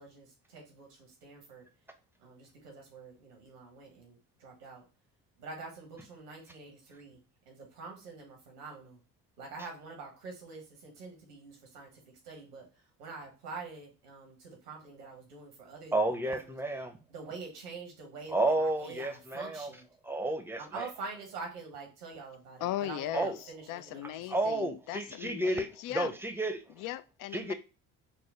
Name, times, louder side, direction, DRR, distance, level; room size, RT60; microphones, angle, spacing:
voice 1, 0.0-1.6 2.2-4.8 5.4-7.2 7.5-9.0 9.4-12.7 13.0-16.5 17.1-19.9 20.6-24.0 24.3-24.5, right 4 dB, 85° right, 1.3 m, -46 dB
voice 2, 15.9-17.0 18.3-19.7 20.0-20.9 23.1-23.4 24.3-26.6 27.3-27.5, right 2 dB, 5° right, 0.7 m, -31 dB
voice 3, 22.6-26.1 26.8-27.5, left 13 dB, 50° left, 0.4 m, -38 dB
4.7 x 2.2 x 3.5 m
hypercardioid pair, 55°, 46 cm